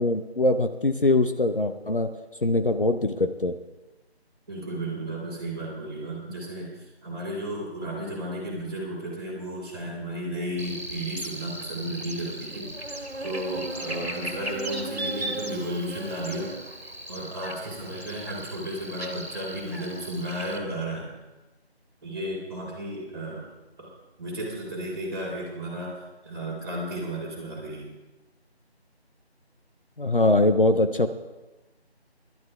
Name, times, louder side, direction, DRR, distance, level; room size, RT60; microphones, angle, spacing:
voice 1, 0.0-2.1 2.4-3.6 30.0-31.1, left 2 dB, 55° left, 8 dB, 0.7 m, -22 dB
voice 2, 4.5-16.6 17.1-21.1 22.0-23.5 23.8-23.9 24.2-26.0 26.2-27.9, right 1 dB, 20° right, -6 dB, 3.3 m, -34 dB
Buzz, 10.6-20.6, right 1 dB, 70° right, 1.8 m, -36 dB
26.5 x 12.0 x 2.3 m, 1.1 s
figure-of-eight pair, 165°, 33 cm